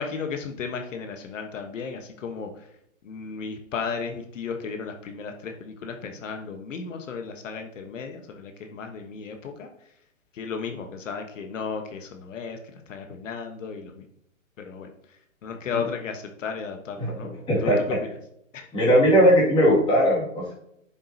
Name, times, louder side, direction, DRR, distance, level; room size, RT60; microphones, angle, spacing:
voice 1, 0.0-2.5 3.0-9.7 10.3-14.0 14.6-14.9 15.4-17.3 17.6-18.1 18.5-18.7, left 5 dB, 65° left, 4 dB, 1.2 m, -34 dB
voice 2, 17.5-18.0 18.7-20.5, equal, 10° left, -4 dB, 2.3 m, -19 dB
10.5 x 7.5 x 2.8 m, 0.75 s
hypercardioid pair, 160°, 41 cm